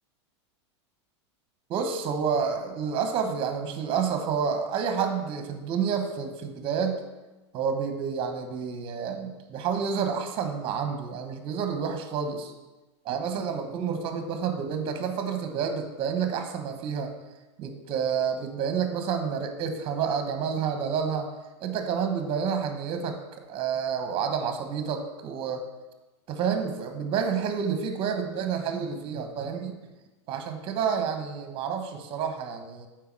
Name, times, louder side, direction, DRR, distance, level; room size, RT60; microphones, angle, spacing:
voice 1, 1.7-7.0 7.5-12.5 13.0-17.1 17.6-21.3 21.6-23.2 23.5-25.6 26.3-29.7 30.3-32.9, right 6 dB, 35° right, 6 dB, 1.2 m, -29 dB
8.0 x 4.8 x 4.7 m, 1.1 s
supercardioid pair, 130°, 15 cm